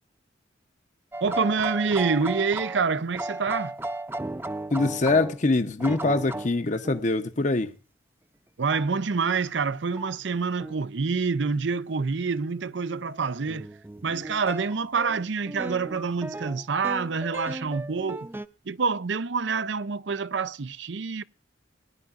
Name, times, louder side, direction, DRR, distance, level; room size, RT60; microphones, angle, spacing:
sound 1, 1.1-5.4 5.8-7.1 8.7-8.9 10.0-10.2 10.6-10.8 13.1-18.5, right 2 dB, 10° right, 0.5 m, -36 dB
voice 1, 1.2-3.7 8.6-13.7 14.0-18.3 18.7-21.2, right 5 dB, 70° right, 0.6 m, -27 dB
voice 2, 4.7-7.7, left 3 dB, 40° left, 0.8 m, -24 dB
21.0 x 10.5 x 2.5 m
head